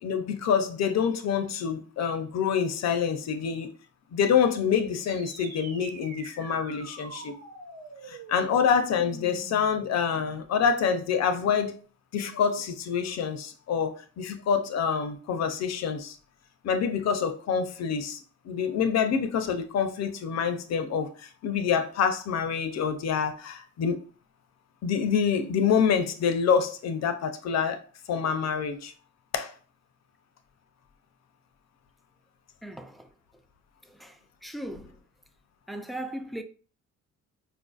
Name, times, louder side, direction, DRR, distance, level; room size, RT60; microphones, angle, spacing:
voice 1, 0.0-3.7 4.1-7.3 8.1-11.8 12.1-16.2 16.6-18.2 18.4-24.0 24.8-27.8 28.1-28.9 29.3-29.5, left 7 dB, 60° left, 0.6 m, -26 dB
sound 1, 4.9-9.9, right 3 dB, 60° right, 1.1 m, -45 dB
voice 2, 32.6-33.4 33.8-35.0 35.7-36.4, right 1 dB, ahead, 0.3 m, -39 dB
4.4 x 2.5 x 2.3 m
cardioid pair, 90°, 30 cm